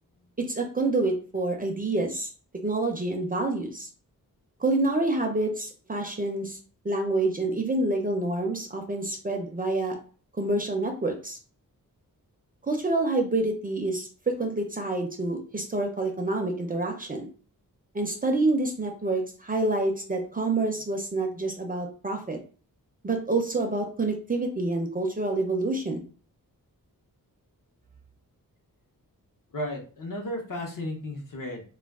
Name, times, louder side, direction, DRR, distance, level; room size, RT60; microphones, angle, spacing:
voice 1, 0.4-3.9 4.6-6.6 6.8-10.0 10.4-11.4 12.6-17.3 17.9-22.4 23.0-26.0, right 2 dB, 25° right, 3 dB, 0.4 m, -27 dB
voice 2, 29.5-31.6, left 1 dB, 65° left, 1 dB, 0.8 m, -34 dB
2.3 x 2.2 x 3.4 m, 0.39 s
wide cardioid pair, 145°, 34 cm